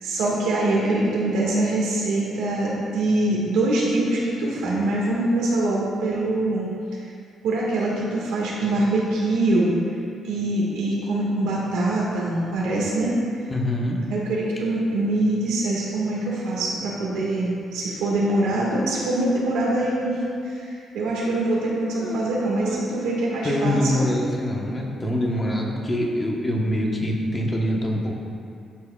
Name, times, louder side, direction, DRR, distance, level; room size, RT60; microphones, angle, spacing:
voice 1, 0.0-6.7 7.4-9.8 10.2-13.1 14.1-20.2 20.4-24.1, right 2 dB, 90° right, -5 dB, 1.6 m, -24 dB
voice 2, 13.5-14.0 21.9-22.8 23.4-28.1, left 1 dB, 25° left, -1 dB, 1.0 m, -25 dB
11.5 x 4.8 x 2.3 m, 2.5 s
cardioid pair, 90°, 0 cm